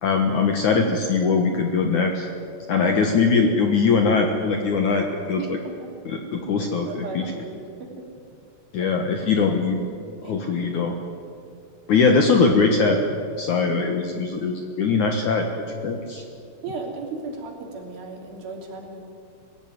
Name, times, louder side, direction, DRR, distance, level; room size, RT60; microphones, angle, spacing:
voice 1, 0.0-2.3 2.7-5.6 6.1-6.9 7.1-7.2 8.7-9.8 10.2-11.0 11.9-15.5 15.8-16.2, left 4 dB, 60° left, 3 dB, 2.2 m, -21 dB
voice 2, 5.4-5.7 6.6-7.9 8.8-9.0 10.2-10.4 16.6-19.0, right 4 dB, 60° right, 1 dB, 4.5 m, -35 dB
24.0 x 16.0 x 9.5 m, 2.4 s
omnidirectional pair, 5.0 m